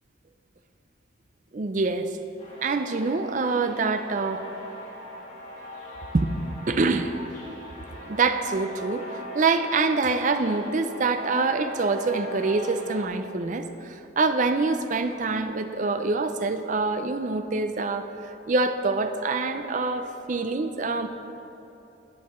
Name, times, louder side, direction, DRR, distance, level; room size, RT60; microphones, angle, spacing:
voice 1, 1.5-2.1 2.6-4.5 6.1-6.3 6.7-7.1 8.0-18.1 18.5-21.1, right 3 dB, 40° right, 8 dB, 0.5 m, -25 dB
sound 1, 2.4-13.0, left 1 dB, 40° left, 2.5 m, -40 dB
10.5 x 8.4 x 4.3 m, 3.0 s
head